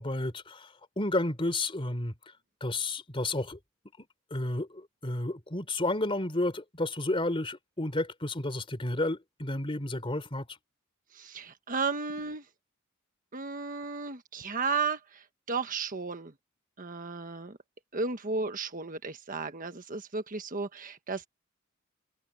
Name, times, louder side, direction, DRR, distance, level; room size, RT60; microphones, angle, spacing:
voice 1, 0.0-2.1 2.6-3.6 4.3-10.5, left 2 dB, 25° left, 3.5 m, -31 dB
voice 2, 11.1-12.4 13.3-16.3 16.8-17.6 17.9-21.3, right 4 dB, 40° right, 1.3 m, -34 dB
head